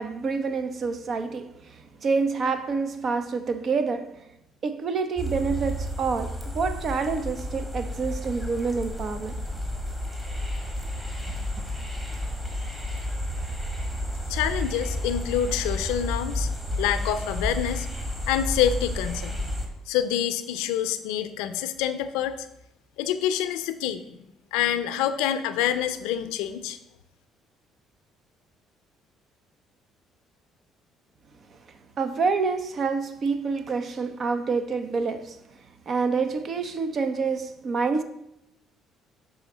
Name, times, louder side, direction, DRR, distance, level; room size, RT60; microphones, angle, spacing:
voice 1, 0.0-4.3 4.6-9.3 31.5-31.6 32.0-35.4 35.9-38.0, right 4 dB, 50° right, 0.7 m, -27 dB
sound 1, 5.2-19.7, left 1 dB, 15° right, 1.7 m, -31 dB
voice 2, 14.3-16.5 16.8-17.9 18.3-19.4 19.9-22.5 23.0-24.2 24.5-26.8, left 10 dB, 90° left, 0.5 m, -27 dB
6.3 x 3.7 x 5.9 m
supercardioid pair, 85°, 0 cm